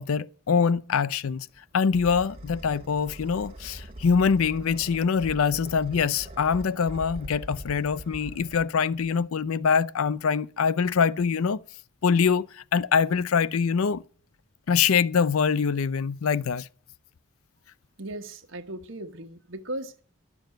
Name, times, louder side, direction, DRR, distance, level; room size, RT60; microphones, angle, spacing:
voice 1, 0.0-1.5 1.7-11.6 12.0-14.0 14.7-16.7, left 6 dB, 85° left, 0.5 m, -24 dB
sound 1, 1.3-9.3, equal, 25° right, 1.9 m, -43 dB
voice 2, 18.0-20.0, right 1 dB, 65° right, 1.2 m, -37 dB
11.5 x 7.0 x 9.0 m
head